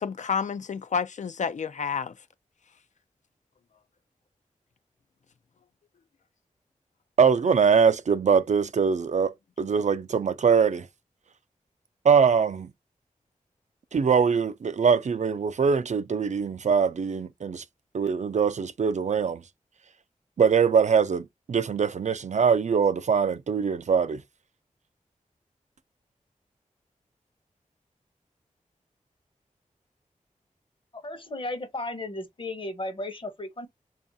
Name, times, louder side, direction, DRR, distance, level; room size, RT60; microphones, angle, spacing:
voice 1, 0.0-2.1, left 6 dB, 60° left, 0.4 m, -29 dB
voice 2, 7.2-10.9 12.0-12.7 13.9-17.6 17.9-19.4 20.4-24.2, right 6 dB, 60° right, 0.4 m, -22 dB
voice 3, 30.9-33.7, left 2 dB, 40° left, 0.8 m, -35 dB
3.4 x 2.4 x 4.0 m
wide cardioid pair, 100°, 14 cm